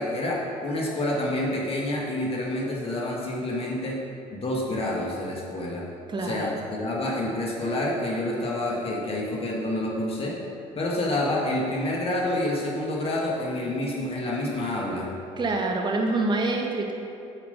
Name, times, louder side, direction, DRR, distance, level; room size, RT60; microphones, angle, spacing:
voice 1, 0.0-4.0 4.3-5.8 6.2-10.4 10.8-15.1, left 1 dB, 40° left, -3 dB, 1.8 m, -28 dB
voice 2, 6.1-6.5 15.4-16.9, right 2 dB, 30° right, 1 dB, 1.2 m, -26 dB
9.2 x 5.1 x 5.5 m, 2.5 s
supercardioid pair, 70°, 16 cm